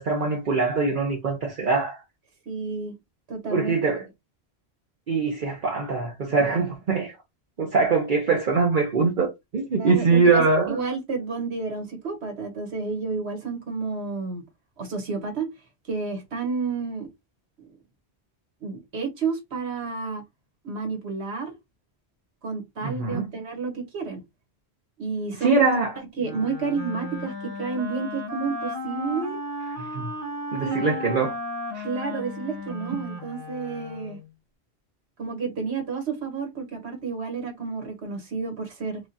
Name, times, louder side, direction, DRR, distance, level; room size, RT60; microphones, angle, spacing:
voice 1, 0.0-2.0 3.5-4.1 5.1-7.1 7.6-10.8 22.8-23.3 25.4-25.9 29.8-30.1 30.5-31.4 31.7-31.9, right 4 dB, 50° right, 1.0 m, -23 dB
voice 2, 2.5-2.9 3.3-3.7 9.8-14.4 14.8-15.5 15.9-17.1 18.6-20.2 20.6-21.5 22.4-24.2 25.0-25.6 26.2-27.3 27.6-29.4 30.6-30.9 31.8-34.2 35.2-39.0, right 4 dB, 80° right, 1.5 m, -30 dB
Wind instrument woodwind instrument, 26.2-34.3, left 1 dB, 15° right, 1.2 m, -35 dB
4.8 x 2.3 x 2.7 m
omnidirectional pair, 1.1 m